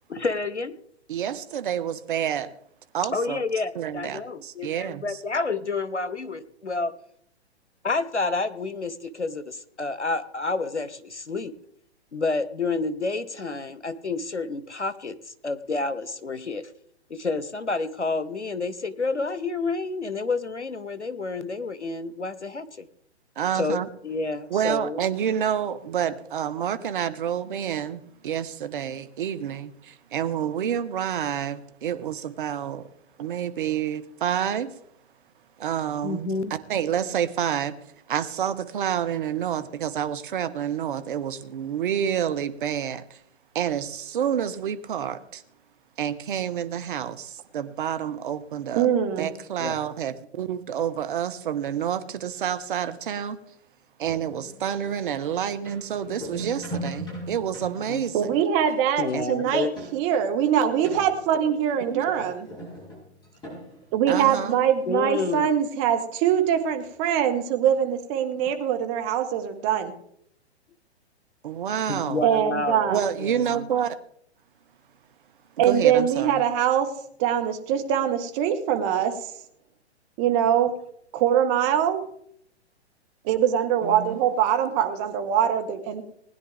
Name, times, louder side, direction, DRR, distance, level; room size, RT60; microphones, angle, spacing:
voice 1, 0.1-0.7 3.1-6.9 7.8-11.5 12.1-16.7 17.1-22.9 23.5-25.0 36.0-36.5 49.6-49.8 57.9-58.0 59.0-59.7 64.9-65.5 71.9-72.9 73.2-73.6, left 3 dB, 90° left, 14 dB, 1.0 m, -29 dB
voice 2, 1.1-2.5 2.9-3.4 3.7-5.2 23.4-23.9 24.5-32.9 33.2-34.7 35.6-36.3 36.7-37.7 38.1-43.2 43.5-45.4 46.0-48.9 49.2-53.4 54.0-58.2 59.1-59.2 61.9-62.0 64.1-64.6 71.4-72.2 72.9-74.0 75.6-76.4 83.8-84.2, right 9 dB, 50° right, 11 dB, 1.1 m, -28 dB
voice 3, 48.7-49.3 58.1-59.7 59.9-62.5 63.9-69.9 72.2-73.0 75.6-76.9 77.2-79.1 80.2-80.7 81.1-82.0 83.2-86.0, right 9 dB, 30° right, 6 dB, 1.5 m, -23 dB
sound 1, 54.0-60.2 60.5-60.6 60.8-64.6 65.1-65.2 65.4-65.5 66.2-66.5 66.8-67.1, right 1 dB, 15° left, 6.6 m, -40 dB
20.0 x 10.0 x 3.5 m, 0.69 s
figure-of-eight pair, 120°, 34 cm